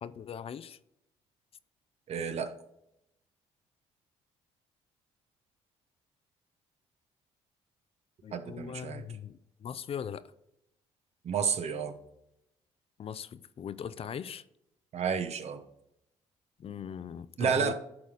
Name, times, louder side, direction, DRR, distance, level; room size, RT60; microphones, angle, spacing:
voice 1, 0.0-0.8 8.2-10.3 13.0-14.4 16.6-17.7, left 8 dB, 50° left, 0.5 m, -40 dB
voice 2, 2.1-2.5 8.3-9.0 11.2-11.9 14.9-15.6 17.4-17.7, right 6 dB, 55° right, 1.1 m, -30 dB
10.5 x 4.1 x 4.9 m
supercardioid pair, 70°, 13 cm